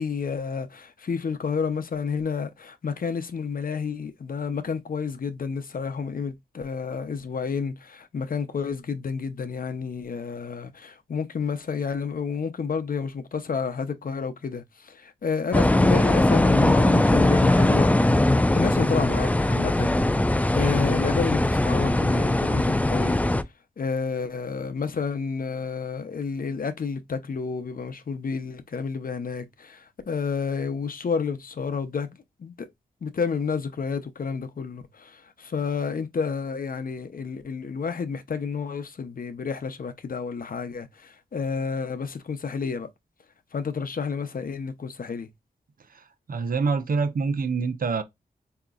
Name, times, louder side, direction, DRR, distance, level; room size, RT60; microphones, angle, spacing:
voice 1, 0.0-17.9 18.5-20.0 20.5-23.2 23.8-32.7 33.0-42.9 43.5-45.3, left 5 dB, 55° left, 0.7 m, -30 dB
sound 1, 15.5-23.4, left 1 dB, 10° left, 0.3 m, -20 dB
voice 2, 45.9-48.0, right 4 dB, 55° right, 0.7 m, -26 dB
4.9 x 2.8 x 2.4 m
wide cardioid pair, 75°, 17 cm